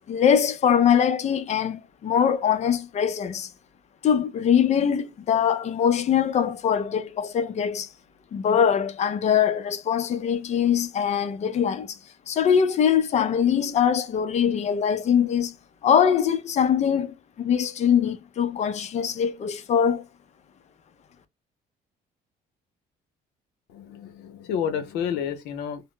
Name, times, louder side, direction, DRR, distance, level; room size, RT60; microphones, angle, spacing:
voice 1, 0.1-3.5 4.0-7.9 8.3-12.0 12.3-15.6 15.8-20.0, left 8 dB, 45° left, 0.5 m, -22 dB
voice 2, 23.7-25.8, left 8 dB, 80° left, 0.7 m, -30 dB
2.0 x 2.0 x 3.7 m
cardioid pair, 110°, 17 cm